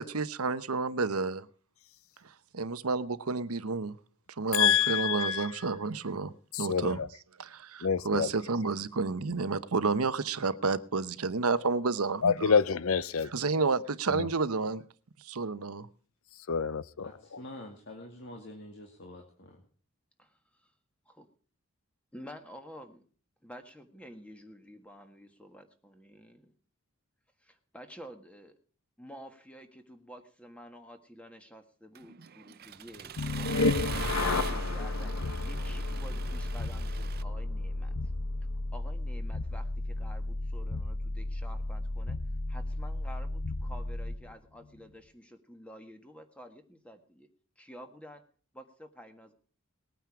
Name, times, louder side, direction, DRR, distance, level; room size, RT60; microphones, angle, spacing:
voice 1, 0.0-1.5 2.5-4.0 4.4-6.3 6.6-7.0 7.4-12.6 13.2-14.8 15.2-15.9, right 4 dB, 85° right, 0.9 m, -30 dB
voice 2, 4.5-5.5 6.5-7.1 7.8-8.3 12.2-13.3 14.2-14.3 16.5-17.4, left 7 dB, 70° left, 0.6 m, -27 dB
voice 3, 17.0-19.6, left 1 dB, 50° left, 2.2 m, -46 dB
voice 4, 22.1-23.0 23.4-26.5 27.4-28.5 29.0-37.9 38.7-42.2 42.5-47.3 47.6-48.2 48.5-49.3, equal, 5° left, 1.5 m, -50 dB
Accelerating revving vroom, 32.0-37.2, right 7 dB, 45° right, 0.6 m, -41 dB
sound 1, 33.2-44.3, left 2 dB, 90° left, 1.2 m, -32 dB
20.0 x 9.3 x 4.8 m
head